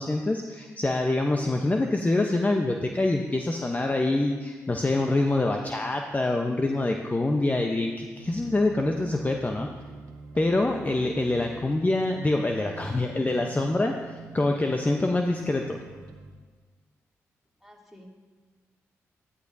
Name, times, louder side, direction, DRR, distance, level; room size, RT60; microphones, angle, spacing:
voice 1, 0.0-9.7 10.4-13.9 14.3-15.8, left 2 dB, 25° left, 2 dB, 0.9 m, -25 dB
sound 1, 8.2-16.3, right 5 dB, 85° right, 0.9 m, -45 dB
voice 2, 17.6-18.1, equal, ahead, -4 dB, 3.1 m, -50 dB
12.5 x 11.5 x 2.7 m, 1.3 s
supercardioid pair, 45°, 6 cm